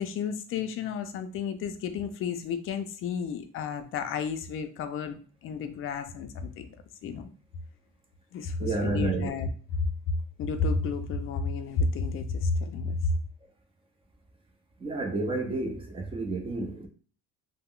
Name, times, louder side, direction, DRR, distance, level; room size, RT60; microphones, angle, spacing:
voice 1, 0.0-6.7 7.0-7.3 8.3-9.5 9.8-13.1, left 4 dB, 45° left, 0.4 m, -31 dB
voice 2, 8.6-9.3 14.8-16.9, right 3 dB, 20° right, 0.5 m, -30 dB
2.3 x 2.0 x 3.6 m
cardioid pair, 145°, 30 cm